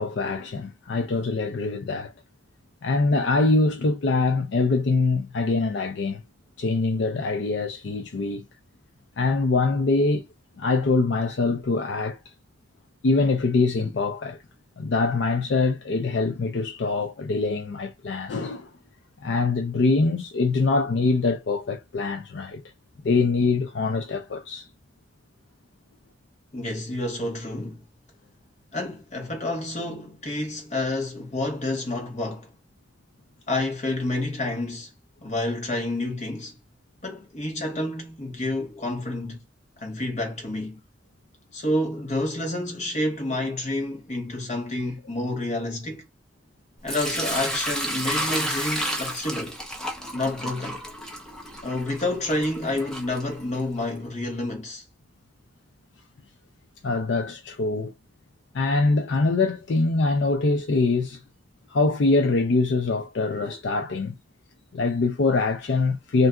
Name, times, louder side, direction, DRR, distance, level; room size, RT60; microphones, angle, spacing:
voice 1, 0.0-2.1 2.8-6.2 6.6-8.4 9.2-10.2 10.6-12.2 13.0-14.4 14.8-18.7 19.2-22.6 23.0-24.7 56.8-57.9 58.5-61.2 61.7-64.2 64.7-66.3, left 3 dB, 65° left, 0.4 m, -24 dB
voice 2, 26.5-27.8 28.7-32.5 33.5-34.9 35.2-36.6 37.0-39.4 39.8-40.8 41.5-46.1 46.8-49.6 50.1-50.8 51.6-54.8, left 1 dB, 40° left, 1.0 m, -29 dB
Sink (filling or washing) / Liquid, 46.9-53.8, equal, 5° left, 0.7 m, -31 dB
2.5 x 2.3 x 3.6 m
head